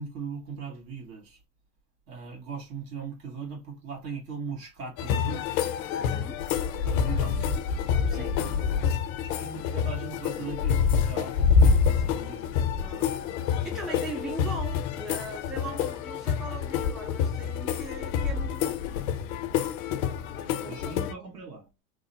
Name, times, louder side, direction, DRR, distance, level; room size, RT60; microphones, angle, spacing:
voice 1, 0.0-1.4 2.1-5.5 6.8-12.7 20.7-21.7, right 5 dB, 75° right, 1.6 m, -40 dB
sound 1, 5.0-21.1, left 6 dB, 65° left, 0.6 m, -27 dB
voice 2, 6.0-6.5 8.1-8.5 12.0-12.4 12.8-18.8 20.3-21.3, right 2 dB, ahead, 0.4 m, -41 dB
3.1 x 2.0 x 2.7 m
hypercardioid pair, 100°, 46 cm